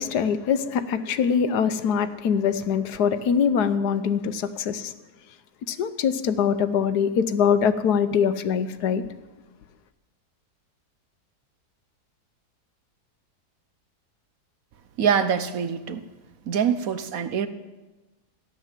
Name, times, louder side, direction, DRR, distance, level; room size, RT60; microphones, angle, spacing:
voice 1, 0.0-4.9 5.7-9.0, left 7 dB, 80° left, 1.4 m, -23 dB
voice 2, 15.0-16.0 16.5-17.5, right 7 dB, 65° right, 1.1 m, -24 dB
14.5 x 11.0 x 7.5 m
omnidirectional pair, 1.7 m